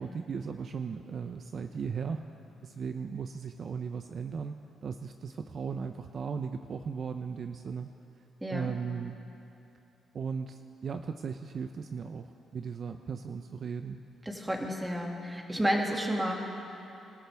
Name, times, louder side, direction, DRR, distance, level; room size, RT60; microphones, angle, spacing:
voice 1, 0.0-2.3 2.6-4.6 4.8-7.9 8.5-9.2 10.1-14.0, right 6 dB, 50° right, 7 dB, 0.6 m, -37 dB
voice 2, 8.4-8.7 14.3-16.3, equal, 10° right, 0 dB, 2.2 m, -31 dB
26.5 x 14.0 x 3.5 m, 2.9 s
cardioid pair, 90°, 0 cm